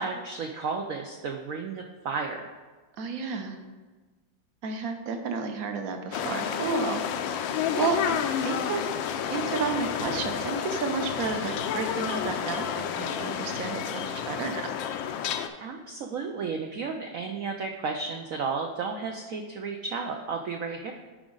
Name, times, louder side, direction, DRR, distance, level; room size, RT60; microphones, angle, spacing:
voice 1, 0.0-2.4 15.6-20.9, right 4 dB, 75° right, 3 dB, 0.7 m, -33 dB
voice 2, 3.0-3.6 4.6-7.0 7.8-8.2 8.4-8.8 9.3-14.6, right 4 dB, 60° right, 5 dB, 1.0 m, -31 dB
sound 1, 6.1-15.5, left 8 dB, 80° left, 1.3 m, -30 dB
11.5 x 4.8 x 3.8 m, 1.3 s
omnidirectional pair, 2.1 m